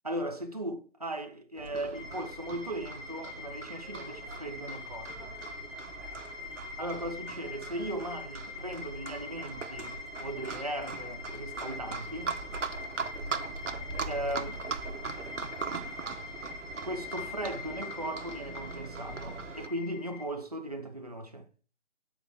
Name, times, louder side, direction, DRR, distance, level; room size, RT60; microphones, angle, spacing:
voice 1, 0.0-5.4 6.8-12.4 14.1-14.6 16.8-21.5, right 1 dB, 35° right, 0.5 m, -37 dB
Livestock farm animals working animals, 1.6-19.7, right 4 dB, 80° right, 0.8 m, -40 dB
sound 1, 1.9-20.3, left 4 dB, 90° left, 2.1 m, -44 dB
8.6 x 3.9 x 3.2 m
figure-of-eight pair, 165°, 36 cm